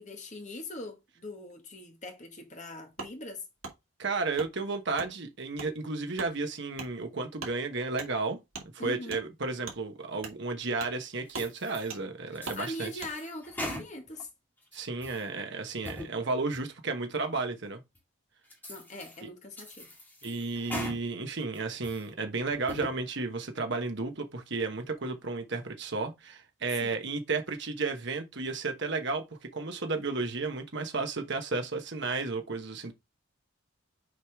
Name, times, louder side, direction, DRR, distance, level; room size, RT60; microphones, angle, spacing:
voice 1, 0.0-3.4 8.8-9.2 12.4-14.3 18.7-19.9 26.8-27.0, left 1 dB, 35° left, 1.8 m, -41 dB
Wood, 3.0-3.1 3.6-3.8 4.4-4.5 5.0-5.1 5.6-5.7 6.1-6.3 6.7-6.9 7.4-7.6 8.0-8.1 8.5-8.7 9.1-9.2 9.6-9.8 10.2-10.4 10.8-11.0 11.3-11.5 11.9-12.0 12.4-12.6 13.0-13.1, right 4 dB, 80° right, 2.3 m, -41 dB
voice 2, 4.0-8.4 8.8-12.9 14.7-17.8 19.2-19.3 20.2-32.9, right 3 dB, 55° right, 1.2 m, -33 dB
sound 1, 11.3-11.9 12.3-14.2 14.6-15.2 15.7-16.1 16.5-16.6 17.2-17.3 18.0-18.1 18.5-19.2 19.6-21.0 21.4-22.1 22.5-22.9, left 1 dB, 10° left, 2.0 m, -41 dB
6.4 x 4.9 x 3.5 m
head